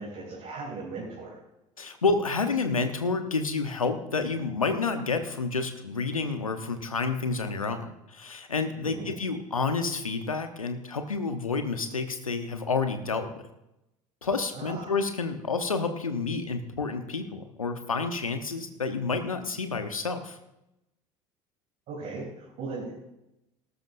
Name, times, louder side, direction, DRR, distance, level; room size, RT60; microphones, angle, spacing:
voice 1, 0.0-1.4 8.8-9.1 14.5-14.9 21.9-22.9, right 3 dB, 50° right, -4 dB, 3.3 m, -38 dB
voice 2, 1.8-13.4 14.2-20.4, left 4 dB, 90° left, 8 dB, 0.9 m, -29 dB
19.0 x 12.5 x 2.6 m, 0.89 s
figure-of-eight pair, 70°, 17 cm